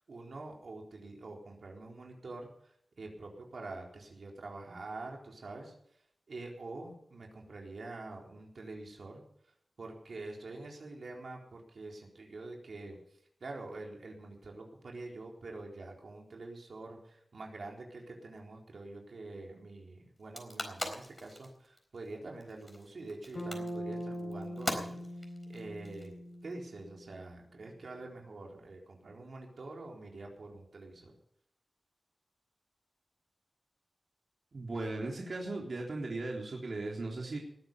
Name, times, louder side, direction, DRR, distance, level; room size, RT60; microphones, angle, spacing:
voice 1, 0.0-2.5 3.0-5.7 6.3-9.2 9.8-13.0 13.4-25.0 25.5-26.1 26.4-31.1, right 2 dB, 85° right, 0 dB, 4.0 m, -46 dB
sound 1, 20.2-26.5, left 1 dB, 25° left, 4.2 m, -41 dB
Bass guitar, 23.3-27.4, equal, 60° left, 6.5 m, -42 dB
voice 2, 34.5-37.4, right 2 dB, 65° right, -1 dB, 3.3 m, -37 dB
20.0 x 10.0 x 5.4 m, 0.71 s
wide cardioid pair, 85°, 0 cm